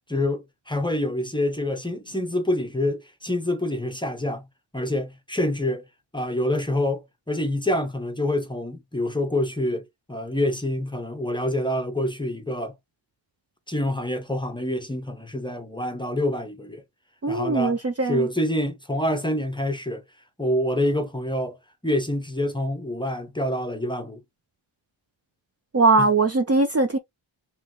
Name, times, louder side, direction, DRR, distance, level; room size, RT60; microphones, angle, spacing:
voice 1, 0.1-4.5 4.7-5.8 6.1-12.8 13.7-16.8 17.3-17.8 18.0-20.0 20.4-21.6 21.8-24.2 26.0-26.1, left 1 dB, 10° left, 0.7 m, -26 dB
voice 2, 17.2-18.3 25.7-27.0, right 3 dB, 30° right, 0.6 m, -20 dB
3.7 x 3.2 x 3.1 m
wide cardioid pair, 150°, 48 cm